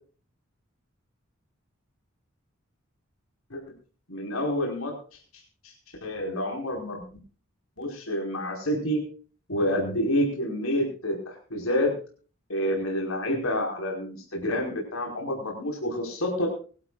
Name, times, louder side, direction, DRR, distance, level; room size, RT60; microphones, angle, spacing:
voice 1, 4.1-4.9 6.0-7.0 7.8-9.0 9.5-11.9 12.5-16.5, equal, 80° left, 0 dB, 5.1 m, -28 dB
24.0 x 12.0 x 2.5 m, 0.39 s
head